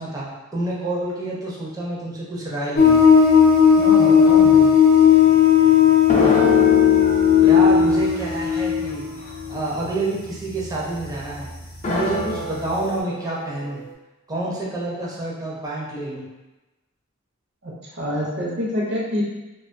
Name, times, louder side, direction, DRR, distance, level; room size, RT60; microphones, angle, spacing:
voice 1, 0.0-3.0 7.4-9.1 9.5-11.5 11.9-13.8 14.3-16.3, right 2 dB, 20° right, -5 dB, 0.5 m, -28 dB
sound 1, 2.8-11.1 11.6-11.7 12.2-12.3, left 8 dB, 80° left, 0.6 m, -15 dB
voice 2, 3.8-4.6 17.6-19.2, left 1 dB, 60° right, -4 dB, 0.7 m, -27 dB
sound 2, 6.1-8.6 8.9-9.0 9.3-9.4 11.8-13.9, left 2 dB, 35° left, 0.4 m, -25 dB
2.4 x 2.3 x 2.5 m, 1.1 s
head